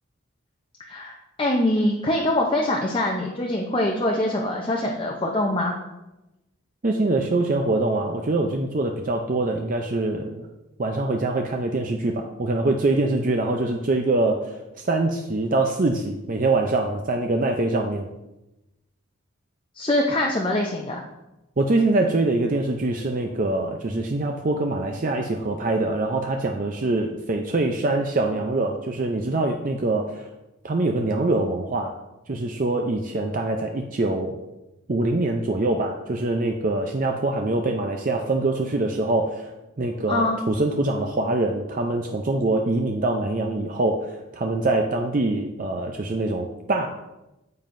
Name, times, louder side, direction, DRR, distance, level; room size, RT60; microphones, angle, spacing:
voice 1, 0.9-5.7 19.7-21.0 40.1-40.4, left 1 dB, 25° left, -1 dB, 0.6 m, -24 dB
voice 2, 6.8-10.5 10.8-14.5 14.8-18.1 21.6-30.3 30.6-31.9 32.3-34.4 34.9-39.5 39.8-46.9, right 2 dB, 40° right, 3 dB, 0.5 m, -24 dB
9.5 x 7.3 x 2.6 m, 0.97 s
head